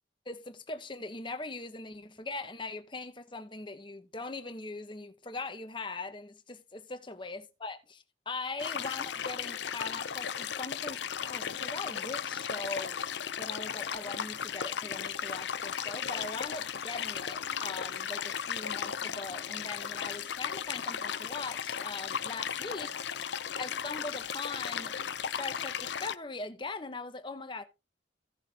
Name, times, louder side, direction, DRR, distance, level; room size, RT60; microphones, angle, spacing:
voice 1, 0.3-13.0 13.4-23.3 23.6-25.0 25.4-27.6, left 3 dB, 25° left, 1.0 m, -41 dB
sound 1, 8.6-26.2, left 8 dB, 70° left, 0.6 m, -36 dB
16.0 x 6.5 x 2.8 m
head